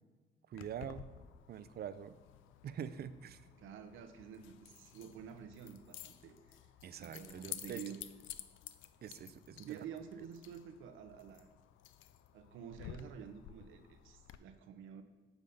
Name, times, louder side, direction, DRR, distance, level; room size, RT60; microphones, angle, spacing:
Keys jangling, 0.5-14.4, left 11 dB, 80° left, 0.4 m, -53 dB
voice 1, 0.5-1.1 1.5-2.1 2.6-3.4 6.8-7.8 9.0-9.8, right 9 dB, 55° right, 14 dB, 0.5 m, -45 dB
voice 2, 3.6-6.6 7.0-8.0 9.6-11.5 12.3-15.0, right 8 dB, 85° right, 8 dB, 0.7 m, -50 dB
9.7 x 3.6 x 5.3 m, 1.3 s
cardioid pair, 90°, 20 cm